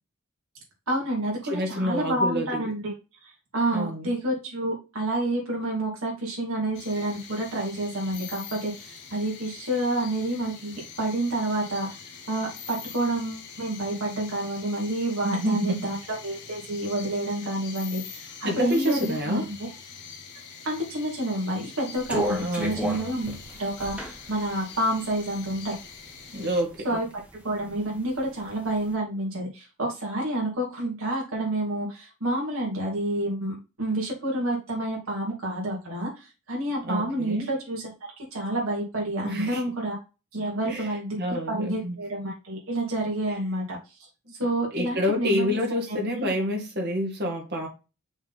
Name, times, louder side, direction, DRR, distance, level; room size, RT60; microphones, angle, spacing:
voice 1, 0.9-2.9 3.2-12.0 12.3-19.7 20.6-25.7 26.8-27.0 27.4-37.9 38.2-40.0 40.3-43.8 44.4-45.6 45.9-46.3, right 1 dB, 70° right, 2.8 m, -29 dB
voice 2, 1.5-2.7 3.7-4.2 15.2-15.9 18.4-19.5 22.4-22.9 26.3-27.0 36.8-37.5 39.2-39.6 40.7-40.9 41.2-42.0 44.7-47.7, equal, 50° right, 2.0 m, -28 dB
sound 1, 6.7-26.6, left 6 dB, 50° left, 1.5 m, -44 dB
sound 2, 22.0-25.9 26.4-27.4 27.7-28.7, equal, 5° right, 1.2 m, -32 dB
6.0 x 4.1 x 4.2 m
head